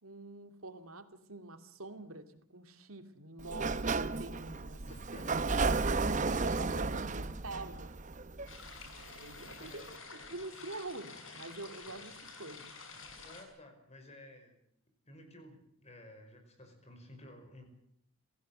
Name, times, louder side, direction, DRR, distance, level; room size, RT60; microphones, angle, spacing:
voice 1, 0.0-4.8 5.1-5.7 6.3-7.9 8.8-10.0 10.3-12.7, right 2 dB, 85° right, 8 dB, 2.5 m, -46 dB
Sliding door, 3.4-9.1, right 3 dB, 35° right, 0.8 m, -33 dB
voice 2, 4.8-5.6 9.4-9.9 13.2-14.6 15.1-17.7, left 1 dB, 30° left, 6 dB, 5.2 m, -54 dB
sound 1, 8.5-13.4, left 4 dB, 65° left, 6.2 m, -50 dB
27.0 x 16.5 x 7.8 m, 0.71 s
head